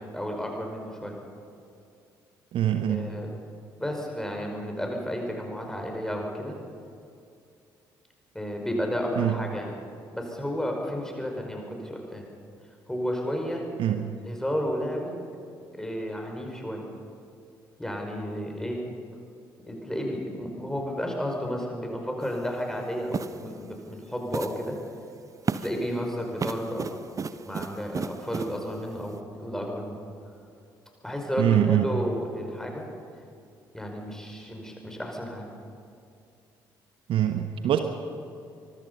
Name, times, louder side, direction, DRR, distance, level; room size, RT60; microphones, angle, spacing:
voice 1, 0.1-1.1 2.9-3.3 3.8-6.6 8.3-9.7 10.1-12.3 12.9-13.6 14.2-15.2 15.7-16.8 17.8-18.8 19.7-24.8 25.6-27.0 27.4-30.0 31.0-32.9 33.7-35.5, equal, 5° left, 1 dB, 5.5 m, -32 dB
voice 2, 2.5-3.1 9.2-9.4 13.8-14.0 31.4-31.9 37.1-37.8, right 11 dB, 55° right, 7 dB, 1.2 m, -23 dB
sound 1, 22.2-22.4 23.1-23.5 24.3-24.7 25.5-25.9 26.4-28.6, right 5 dB, 30° right, 0.9 m, -33 dB
24.5 x 21.5 x 5.6 m, 2.5 s
figure-of-eight pair, 45°, 11 cm